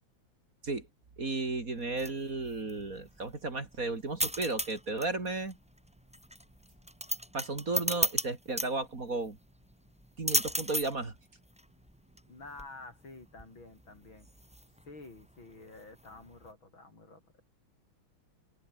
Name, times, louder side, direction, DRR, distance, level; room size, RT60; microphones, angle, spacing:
voice 1, 1.2-5.6 7.3-9.4 10.2-11.1, right 3 dB, 40° right, 3.4 m, -34 dB
sound 1, 1.7-16.5, equal, 5° right, 3.3 m, -37 dB
voice 2, 12.3-14.3 14.9-17.4, left 2 dB, 65° left, 7.3 m, -50 dB
open air
omnidirectional pair, 2.4 m